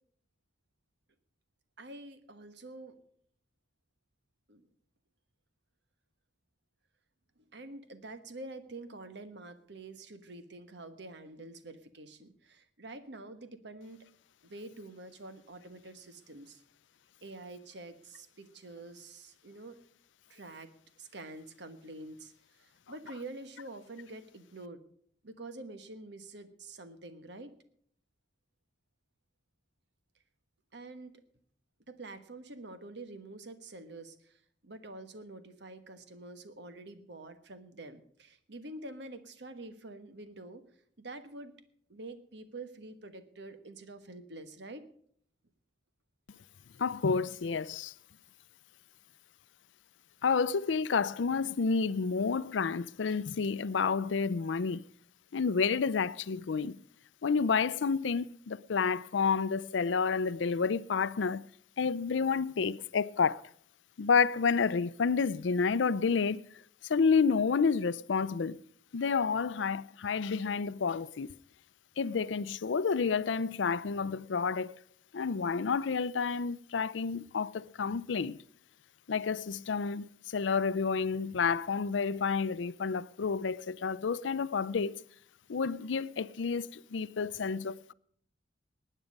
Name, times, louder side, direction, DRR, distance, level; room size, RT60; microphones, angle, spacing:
voice 1, 1.8-3.0 4.5-4.6 7.4-14.1 14.4-16.6 17.2-19.8 20.3-22.3 22.6-24.8 25.2-27.6 30.7-31.2 31.9-40.6 41.0-41.5 41.9-44.9, right 2 dB, 65° right, 1.3 m, -47 dB
voice 2, 46.8-47.9 50.2-54.8 55.3-56.8 57.2-61.5 61.8-63.4 64.0-66.4 66.8-68.6 68.9-71.4 72.0-74.8 75.1-78.4 79.1-85.0 85.5-87.9, left 5 dB, 80° left, 0.5 m, -30 dB
19.5 x 9.1 x 5.3 m
head